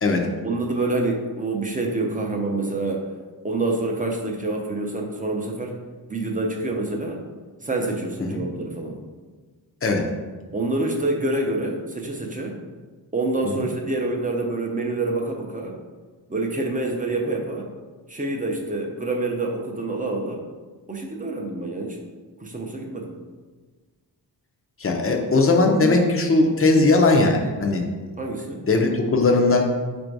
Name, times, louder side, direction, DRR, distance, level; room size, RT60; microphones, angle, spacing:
voice 1, 0.4-3.0 3.4-5.7 6.1-7.2 7.6-9.0 10.5-12.6 13.1-15.7 16.3-17.7 18.1-20.4 20.9-22.0 22.4-23.1 28.2-28.7, right 2 dB, 20° right, 1 dB, 0.5 m, -27 dB
voice 2, 24.8-27.9 28.7-29.7, left 3 dB, 35° left, 3 dB, 0.5 m, -19 dB
4.3 x 2.6 x 4.5 m, 1.4 s
wide cardioid pair, 140°, 43 cm